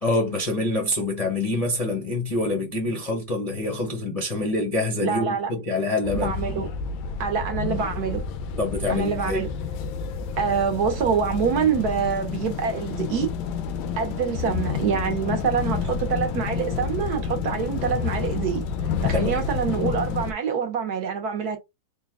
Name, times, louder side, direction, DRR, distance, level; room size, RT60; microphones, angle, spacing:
voice 1, 0.0-6.3 8.6-9.4 19.1-19.4, left 2 dB, 35° left, 0.5 m, -26 dB
voice 2, 5.0-5.5 6.1-6.7 7.2-8.2 8.9-9.5 10.4-13.3 14.0-18.6 19.0-21.6, right 6 dB, 65° right, 1.1 m, -25 dB
sound 1, 6.0-20.3, left 6 dB, 90° left, 1.4 m, -29 dB
4.0 x 2.2 x 3.4 m
omnidirectional pair, 2.1 m